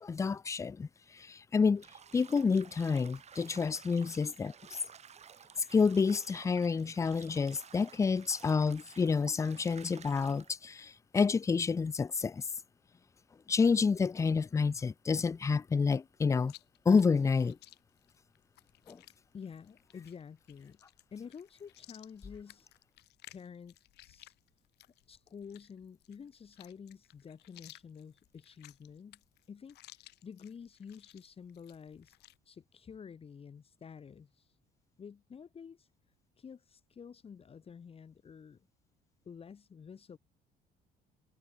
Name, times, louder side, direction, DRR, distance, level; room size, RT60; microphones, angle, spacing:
voice 1, 0.0-1.8 2.1-4.5 5.7-12.4 13.5-16.5 16.9-17.6 18.9-19.0, left 5 dB, 20° left, 0.4 m, -29 dB
Bathtub (filling or washing), 1.8-10.5, right 7 dB, 40° right, 2.5 m, -54 dB
Chewing mastication, 16.4-32.4, left 16 dB, 80° left, 2.3 m, -59 dB
voice 2, 19.3-20.8 21.1-22.7 23.3-23.8 24.0-24.3 25.1-29.2 29.5-32.2 32.5-34.6 35.0-35.9 36.4-38.7 39.3-40.2, left 6 dB, 35° left, 2.1 m, -49 dB
cardioid pair, 110°, 17 cm